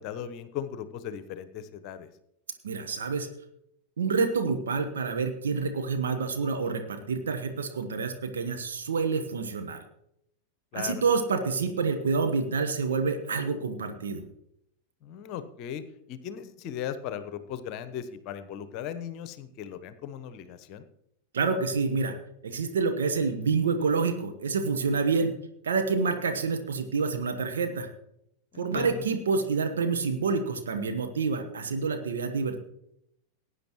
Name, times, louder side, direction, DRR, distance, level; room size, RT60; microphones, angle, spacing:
voice 1, 0.0-2.1 10.7-11.0 15.0-15.8 16.1-20.8 28.5-29.0, left 9 dB, 40° left, 12 dB, 0.9 m, -37 dB
voice 2, 2.6-3.3 4.0-9.8 10.7-14.3 21.3-22.1 22.4-25.3 25.6-27.9 28.6-32.6, right 4 dB, 65° right, 5 dB, 1.2 m, -28 dB
18.5 x 9.7 x 3.1 m, 0.78 s
figure-of-eight pair, 90°, 0 cm